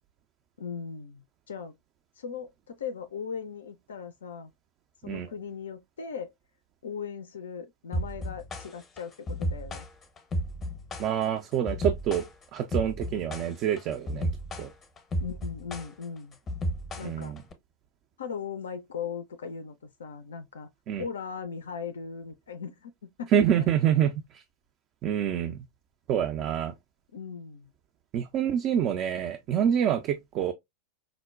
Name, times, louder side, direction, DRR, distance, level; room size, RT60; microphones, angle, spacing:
voice 1, 0.6-1.7 2.2-4.5 5.0-6.3 6.8-9.9 15.2-16.4 17.0-17.4 18.2-20.7 21.0-22.9 23.2-23.3 23.6-23.7 26.4-26.5 27.1-27.7, left 6 dB, 65° left, 0.3 m, -38 dB
sound 1, 7.9-17.5, equal, 25° left, 0.7 m, -33 dB
voice 2, 11.0-12.3 12.5-14.3 14.6-14.7 17.0-17.4 20.9-21.0 23.3-24.4 25.0-25.6 26.1-26.7 28.1-30.5, right 9 dB, 35° right, 0.4 m, -27 dB
4.8 x 2.1 x 2.2 m
figure-of-eight pair, 90°, 0 cm